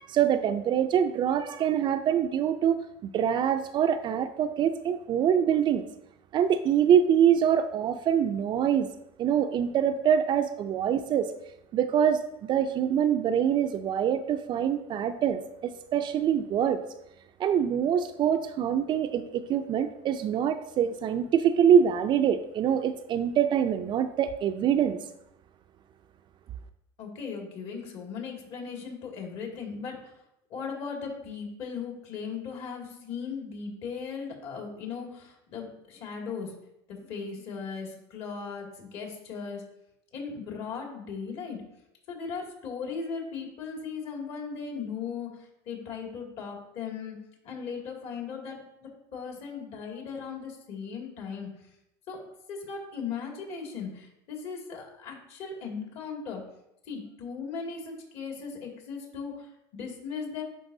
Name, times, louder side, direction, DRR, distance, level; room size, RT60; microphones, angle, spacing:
voice 1, 0.0-2.8 3.0-5.9 6.3-8.9 9.2-11.3 11.7-12.2 12.5-15.4 15.9-16.8 17.4-25.0, right 8 dB, 40° right, 9 dB, 0.4 m, -24 dB
voice 2, 27.0-30.1 30.5-36.5 36.9-39.6 40.1-41.6 42.1-47.2 47.4-51.5 52.1-52.2 52.5-56.4 56.9-60.4, left 5 dB, 55° left, 1 dB, 2.2 m, -37 dB
11.0 x 4.6 x 2.7 m, 0.82 s
supercardioid pair, 115°, 12 cm